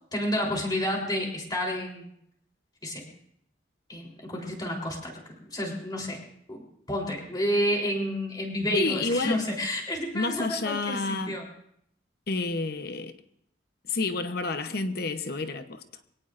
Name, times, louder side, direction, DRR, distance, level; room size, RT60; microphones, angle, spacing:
voice 1, 0.1-2.1 2.8-3.1 3.9-5.2 5.5-6.2 6.5-11.4, equal, 20° left, 3.6 m, -30 dB
voice 2, 8.7-9.4 10.1-11.4 12.3-13.1 13.9-15.8, left 3 dB, 55° left, 0.9 m, -29 dB
23.5 x 17.5 x 2.6 m
head